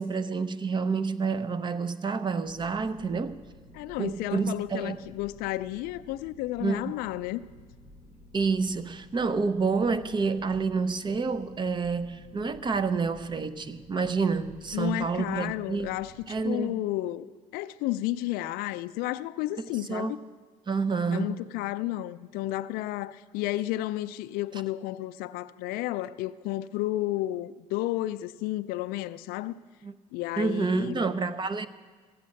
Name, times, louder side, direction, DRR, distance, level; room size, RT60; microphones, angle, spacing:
voice 1, 0.0-3.4 4.0-5.0 6.6-6.9 8.3-15.9 16.3-16.8 19.9-20.2 20.7-21.4 29.8-29.9 30.4-31.7, right 4 dB, 30° right, 0.6 m, -28 dB
sound 1, 2.4-16.5, left 1 dB, 85° right, 3.9 m, -53 dB
voice 2, 3.7-7.5 14.7-16.1 16.4-20.2 21.1-29.6 30.1-31.0, left 15 dB, 85° left, 0.4 m, -32 dB
14.0 x 8.6 x 6.4 m
supercardioid pair, 85°, 15 cm